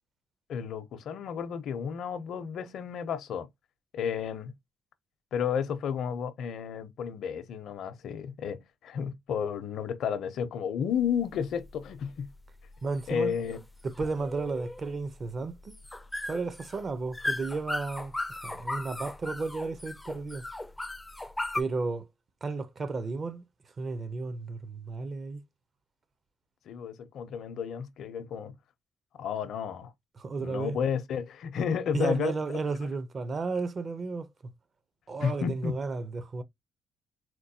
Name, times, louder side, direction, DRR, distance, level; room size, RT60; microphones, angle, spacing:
voice 1, 0.5-3.5 3.9-4.5 5.3-12.3 13.1-13.6 26.7-28.5 29.2-29.9 30.4-32.6 35.2-35.8, left 7 dB, 70° left, 0.6 m, -32 dB
sound 1, 10.9-21.6, left 2 dB, 10° left, 0.4 m, -37 dB
voice 2, 12.8-13.3 13.8-15.8 16.3-18.1 18.4-20.4 21.5-22.1 22.4-23.4 23.8-25.4 30.2-30.8 31.9-34.3 35.1-36.4, right 3 dB, 40° right, 0.6 m, -33 dB
4.4 x 2.2 x 2.7 m
cardioid pair, 90°, 0 cm